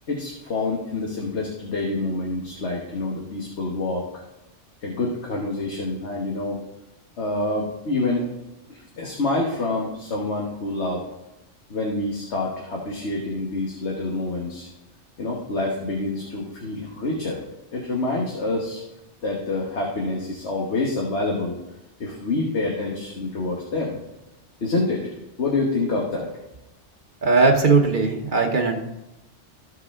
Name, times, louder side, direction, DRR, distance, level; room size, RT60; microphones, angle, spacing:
voice 1, 0.1-4.2 4.8-6.6 7.2-8.3 8.7-11.0 11.7-14.7 15.2-17.4 17.7-18.8 19.2-21.6 22.0-24.0 24.6-26.3, left 2 dB, 70° left, -2 dB, 1.6 m, -27 dB
voice 2, 27.2-28.8, right 4 dB, 45° right, 2 dB, 1.1 m, -18 dB
14.5 x 4.8 x 3.6 m, 0.98 s
omnidirectional pair, 1.2 m